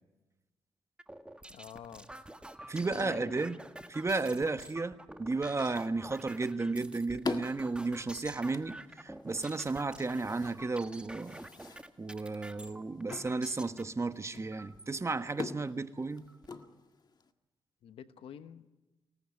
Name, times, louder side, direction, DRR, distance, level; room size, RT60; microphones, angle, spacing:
sound 1, 1.0-13.8 14.5-15.0 15.6-15.7 16.0-16.6, right 1 dB, 10° right, 1.6 m, -49 dB
voice 1, 1.5-2.1 2.8-3.6 17.8-18.7, left 8 dB, 80° left, 1.2 m, -48 dB
voice 2, 2.7-3.6 3.9-11.4 12.0-16.3, right 3 dB, 30° right, 1.3 m, -33 dB
sound 2, 6.2-17.3, left 4 dB, 50° left, 1.7 m, -45 dB
24.5 x 18.5 x 9.6 m
supercardioid pair, 55°, 9 cm